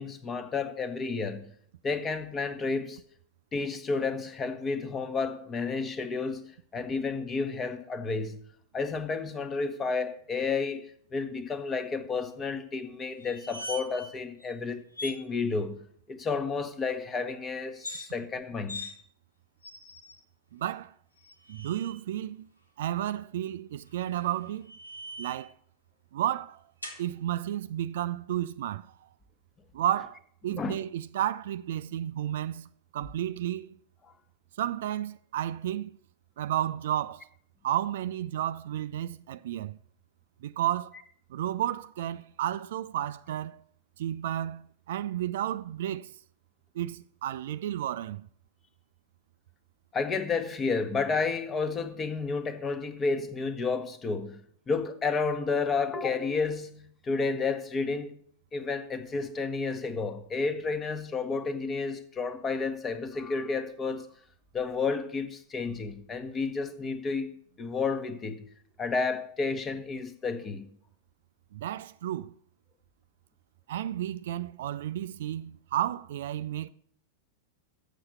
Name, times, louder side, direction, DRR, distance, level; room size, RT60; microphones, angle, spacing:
voice 1, 0.0-1.5 1.8-3.0 3.5-8.4 8.7-10.8 11.1-18.9 30.5-30.7 49.9-54.4 54.7-58.2 58.5-64.1 64.5-67.3 67.6-68.4 68.8-70.7, left 4 dB, 20° left, 1.0 m, -31 dB
sound 1, 13.2-14.1 14.4-14.5 14.9-15.2 17.7-18.1 18.7-18.9 19.6-20.2 21.2-22.0 23.9-25.5 26.8-27.0, left 1 dB, 85° left, 1.7 m, -41 dB
voice 2, 20.5-20.9 21.5-22.5 22.8-24.7 25.2-25.5 26.1-26.6 27.0-28.9 29.7-32.7 32.9-33.8 34.6-35.9 36.4-37.3 37.6-39.8 40.4-40.9 41.3-43.6 44.0-46.1 46.7-48.3 71.5-72.3 73.7-76.7, right 12 dB, 55° right, 0.3 m, -32 dB
7.1 x 6.5 x 7.8 m
figure-of-eight pair, 90°, 0 cm